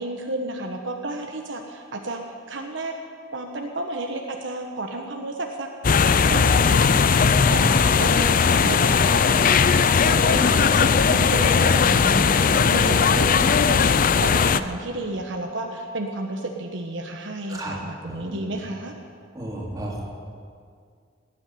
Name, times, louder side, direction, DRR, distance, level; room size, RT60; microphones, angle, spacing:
voice 1, 0.0-2.2 2.5-2.9 3.3-5.7 6.0-18.9, right 2 dB, 70° right, 2 dB, 1.2 m, -32 dB
sound 1, 5.8-14.6, left 6 dB, 45° left, 0.5 m, -18 dB
voice 2, 7.3-7.7 12.5-13.3 17.5-17.7 18.0-18.7 19.3-20.0, right 1 dB, 20° right, -3 dB, 3.2 m, -34 dB
18.0 x 8.2 x 9.4 m, 2.2 s
head